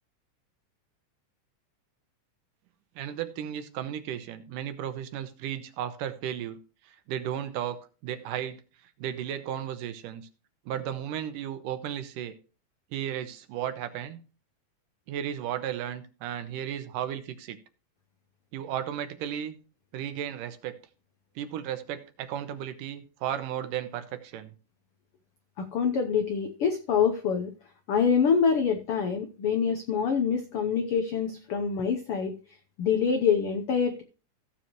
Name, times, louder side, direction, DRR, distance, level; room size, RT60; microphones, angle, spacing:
voice 1, 3.0-6.6 6.9-8.6 9.0-10.3 10.7-12.3 12.9-14.2 15.1-17.6 18.5-19.6 19.9-20.8 21.4-24.5, right 10 dB, 75° right, 10 dB, 2.5 m, -34 dB
voice 2, 25.6-27.5 27.9-32.4 32.8-34.0, left 6 dB, 85° left, 7 dB, 1.2 m, -25 dB
15.5 x 7.1 x 3.0 m, 0.36 s
omnidirectional pair, 3.8 m